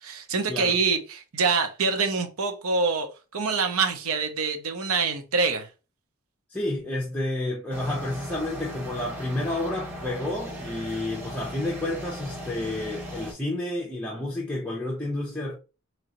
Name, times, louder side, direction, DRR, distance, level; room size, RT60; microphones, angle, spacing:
voice 1, 0.0-5.7, right 4 dB, 75° right, 0.7 m, -25 dB
voice 2, 6.5-15.5, left 1 dB, 5° left, 0.7 m, -30 dB
sound 1, 7.7-13.3, equal, 10° right, 1.1 m, -38 dB
3.7 x 3.1 x 2.9 m
head